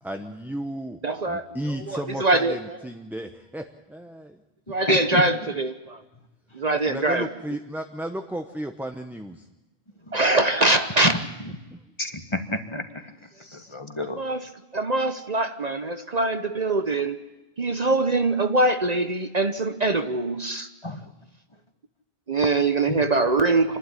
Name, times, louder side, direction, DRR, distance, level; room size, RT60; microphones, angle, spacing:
voice 1, 0.0-1.0 1.3-4.4 6.9-9.4 11.7-11.8, right 1 dB, ahead, 5 dB, 0.9 m, -34 dB
voice 2, 1.0-1.5 1.9-2.8 4.7-6.0 6.5-7.3 10.1-11.2 14.2-17.3 17.6-20.7 22.3-23.8, right 2 dB, 40° right, 9 dB, 1.0 m, -23 dB
voice 3, 4.9-5.2 10.1-10.2 11.0-11.1 12.0-13.0 13.5-14.2 20.8-21.0 22.9-23.0, left 1 dB, 30° left, 7 dB, 1.5 m, -29 dB
27.0 x 12.0 x 9.9 m, 1.1 s
omnidirectional pair, 1.1 m